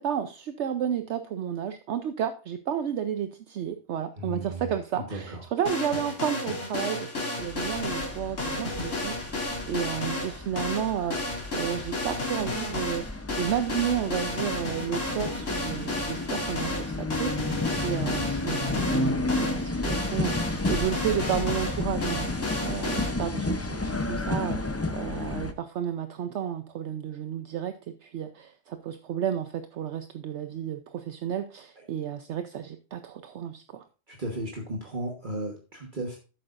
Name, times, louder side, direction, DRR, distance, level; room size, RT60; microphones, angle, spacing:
voice 1, 0.0-27.7 28.0-33.8, right 9 dB, 70° right, 9 dB, 0.9 m, -32 dB
voice 2, 4.2-4.7 5.0-5.4 16.1-16.2 31.8-31.9 34.1-36.2, right 1 dB, 40° right, 1 dB, 1.5 m, -35 dB
sound 1, 5.7-23.1, left 2 dB, 75° left, 2.6 m, -32 dB
sound 2, 7.4-25.5, left 2 dB, 20° left, 0.5 m, -32 dB
11.0 x 8.4 x 2.5 m, 0.34 s
omnidirectional pair, 1.3 m